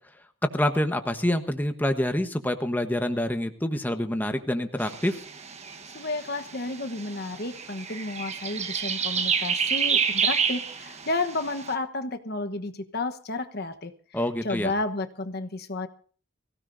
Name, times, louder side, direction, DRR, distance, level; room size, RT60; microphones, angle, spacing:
voice 1, 0.4-5.2 14.1-14.7, left 1 dB, 10° left, 7 dB, 1.2 m, -26 dB
sound 1, 4.8-11.7, right 6 dB, 35° right, 1.3 m, -29 dB
voice 2, 5.9-13.9 14.4-15.9, left 2 dB, 55° left, 8 dB, 1.2 m, -31 dB
23.5 x 16.5 x 2.7 m, 0.42 s
head